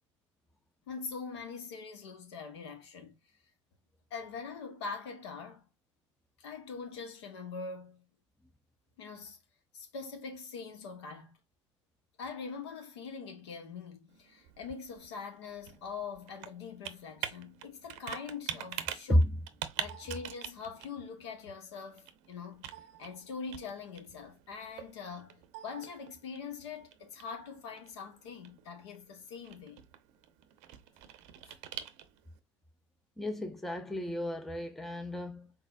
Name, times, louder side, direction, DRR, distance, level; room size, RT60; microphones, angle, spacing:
voice 1, 0.9-3.2 4.1-5.6 6.4-8.0 9.0-9.4 9.7-11.3 12.2-19.2 19.8-22.7 23.0-29.8 31.5-31.6, left 5 dB, 60° left, 1.3 m, -43 dB
Computer keyboard, 14.1-32.4, right 11 dB, 45° right, 0.7 m, -46 dB
voice 2, 33.2-35.5, equal, ahead, 0.6 m, -31 dB
4.3 x 4.0 x 2.5 m
figure-of-eight pair, 75°, 16 cm